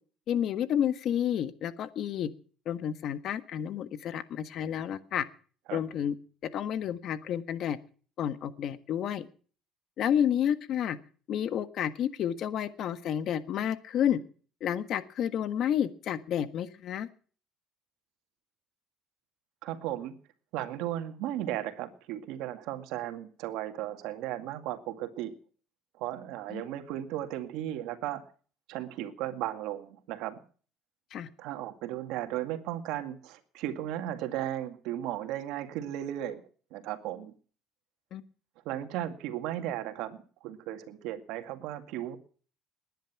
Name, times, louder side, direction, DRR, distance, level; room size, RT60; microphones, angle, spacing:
voice 1, 0.3-2.3 2.6-5.2 5.7-6.1 6.5-7.8 8.2-9.3 10.0-11.0 11.3-14.2 14.6-17.1 26.5-26.6 31.1-31.3 38.1-38.2, left 9 dB, 55° left, 12 dB, 1.5 m, -30 dB
voice 2, 19.6-20.1 20.5-25.3 26.0-28.2 28.7-30.4 31.4-36.4 36.7-37.3 38.7-42.2, right 12 dB, 80° right, 8 dB, 2.1 m, -35 dB
20.0 x 10.5 x 6.0 m, 0.42 s
cardioid pair, 110°, 0 cm